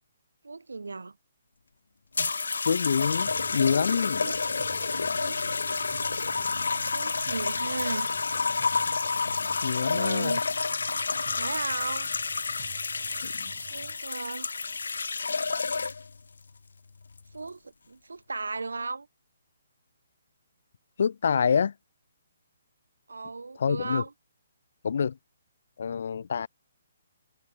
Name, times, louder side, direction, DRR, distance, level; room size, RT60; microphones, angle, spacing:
voice 1, 0.4-1.2 4.2-4.3 5.2-5.4 6.9-8.1 9.8-10.4 11.4-12.1 13.7-14.5 17.3-19.1 23.1-24.1, right 3 dB, 85° right, 5.0 m, -35 dB
sound 1, 2.1-16.2 17.0-17.4, left 4 dB, 80° left, 1.6 m, -29 dB
voice 2, 2.6-4.3 9.6-10.4 13.2-13.5 21.0-21.7 23.6-24.0 24.8-25.2 25.8-26.5, left 6 dB, 65° left, 0.8 m, -26 dB
sound 2, 3.2-14.0, right 11 dB, 45° right, 4.6 m, -50 dB
hypercardioid pair, 145°, 0 cm